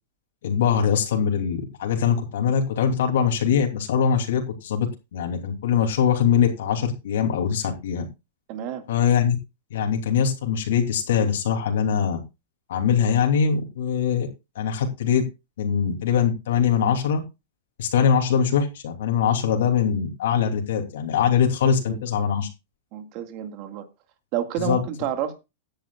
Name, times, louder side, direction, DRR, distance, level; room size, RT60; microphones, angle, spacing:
voice 1, 0.4-8.0 8.9-9.4 9.7-12.2 12.7-14.3 14.5-15.2 15.6-17.2 17.8-22.5 24.6-24.8, left 7 dB, 70° left, 2.9 m, -22 dB
voice 2, 8.5-8.9 21.9-22.0 22.9-23.9 24.3-25.4, right 10 dB, 35° right, 2.0 m, -29 dB
16.5 x 10.0 x 2.4 m
supercardioid pair, 160°, 0 cm